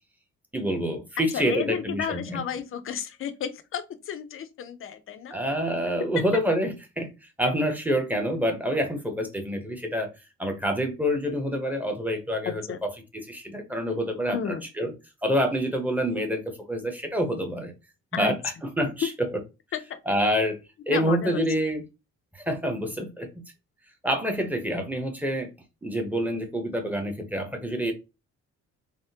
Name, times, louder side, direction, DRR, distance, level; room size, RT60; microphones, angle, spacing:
voice 1, 0.5-2.4 5.3-10.1 10.4-12.6 13.3-14.9 15.2-17.7 18.1-19.1 20.1-20.6 20.9-21.8 22.3-23.4 24.0-25.5 25.8-27.9, equal, 5° right, 0.8 m, -27 dB
voice 2, 1.3-5.3 12.5-12.8 14.3-14.6 18.1-18.4 19.7-20.0 20.9-21.4, left 8 dB, 45° left, 0.5 m, -32 dB
3.4 x 2.1 x 2.7 m
cardioid pair, 90°, 30 cm